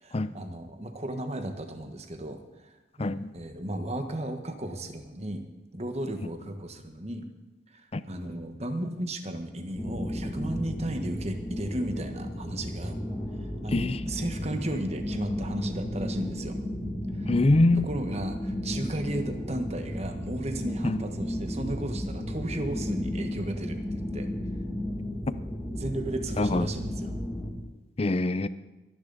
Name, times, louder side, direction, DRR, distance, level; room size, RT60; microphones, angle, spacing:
voice 1, 0.0-5.4 5.7-7.3 7.7-13.0 13.6-16.6 17.1-17.3 17.8-23.8 24.1-24.3 25.7-27.1, right 1 dB, 35° right, 7 dB, 1.3 m, -34 dB
voice 2, 3.0-3.3 7.9-8.0 13.7-14.0 17.3-17.9 20.8-21.0 26.4-26.7 28.0-28.5, left 2 dB, 30° left, 14 dB, 0.5 m, -24 dB
sound 1, 9.8-27.5, left 1 dB, 5° left, 2.3 m, -34 dB
23.5 x 10.5 x 4.1 m, 1.0 s
head